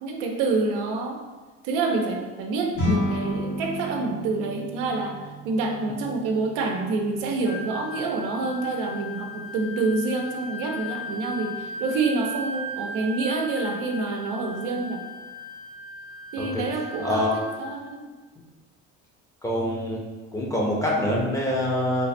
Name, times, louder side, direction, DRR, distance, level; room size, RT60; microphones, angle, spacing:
voice 1, 0.0-1.2 1.6-5.2 5.4-15.0 16.3-18.1, right 3 dB, 90° right, 2 dB, 0.6 m, -27 dB
sound 1, 2.7-12.2, left 1 dB, 85° left, 1.5 m, -34 dB
Wind instrument woodwind instrument, 7.4-17.8, left 1 dB, 65° left, 1.0 m, -37 dB
voice 2, 17.0-17.3 19.4-20.0 20.3-22.1, left 1 dB, 10° left, -3 dB, 0.6 m, -25 dB
3.4 x 2.1 x 4.1 m, 1.3 s
cardioid pair, 145°, 29 cm